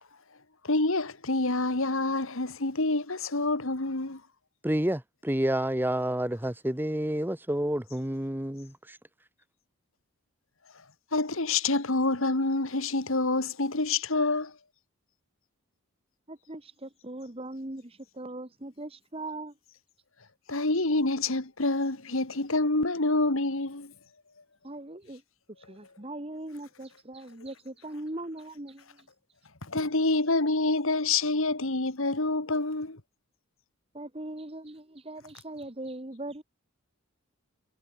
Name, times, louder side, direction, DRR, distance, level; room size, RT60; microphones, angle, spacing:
voice 1, 0.6-4.2 11.1-14.6 20.5-23.9 29.6-33.0, left 2 dB, 65° left, 2.1 m, -27 dB
voice 2, 4.6-9.0, right 1 dB, 10° right, 1.2 m, -29 dB
voice 3, 16.3-19.5 24.6-25.2 25.5-29.4 33.9-36.4, right 1 dB, 25° right, 1.5 m, -40 dB
head